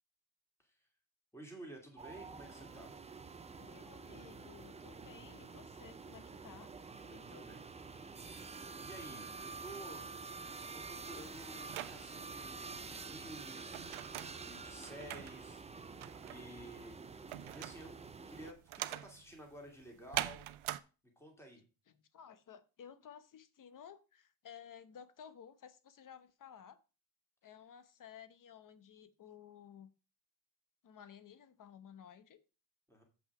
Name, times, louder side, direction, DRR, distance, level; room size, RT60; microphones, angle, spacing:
voice 1, 1.3-2.9 7.0-7.6 8.8-10.1 10.7-15.6 16.3-16.9 17.5-20.4 21.2-21.6 32.9-33.0, right 1 dB, 5° left, 1 dB, 2.5 m, -52 dB
sound 1, 2.0-18.5, right 4 dB, 15° right, 0.4 m, -48 dB
voice 2, 3.5-6.7 21.9-26.8 27.4-29.9 30.8-32.4, left 8 dB, 40° left, 13 dB, 0.9 m, -55 dB
sound 2, 10.9-20.8, right 15 dB, 80° right, 0.7 m, -44 dB
7.9 x 6.0 x 4.8 m, 0.32 s
cardioid pair, 160°, 48 cm